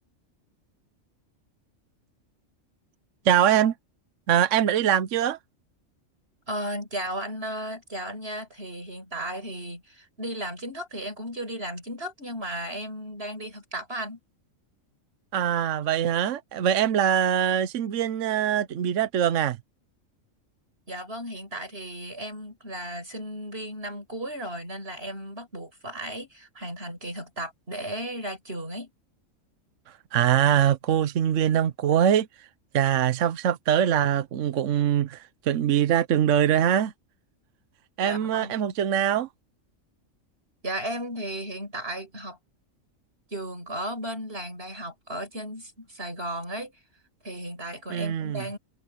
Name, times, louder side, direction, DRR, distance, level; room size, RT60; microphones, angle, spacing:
voice 1, 3.2-3.7 4.3-5.4 15.3-19.6 30.1-32.5 32.7-36.9 38.0-39.3 47.9-48.4, right 10 dB, 70° right, 1.1 m, -23 dB
voice 2, 6.5-14.2 20.9-28.9 38.0-38.7 40.6-42.4 43.3-46.8 47.2-48.6, right 1 dB, 50° right, 6.4 m, -35 dB
omnidirectional pair, 1.4 m